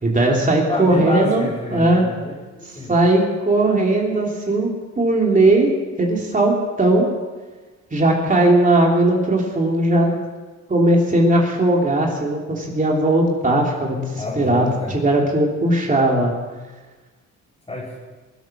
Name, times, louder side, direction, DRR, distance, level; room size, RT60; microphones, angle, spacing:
voice 1, 0.0-1.4 1.7-2.1 2.9-5.7 6.0-7.1 7.9-10.1 10.7-16.3, right 1 dB, 25° right, -1 dB, 3.2 m, -18 dB
voice 2, 0.6-2.9 14.2-15.0 17.7-18.0, left 1 dB, 15° left, -7 dB, 4.3 m, -29 dB
23.5 x 8.1 x 6.0 m, 1.3 s
cardioid pair, 90°, 30 cm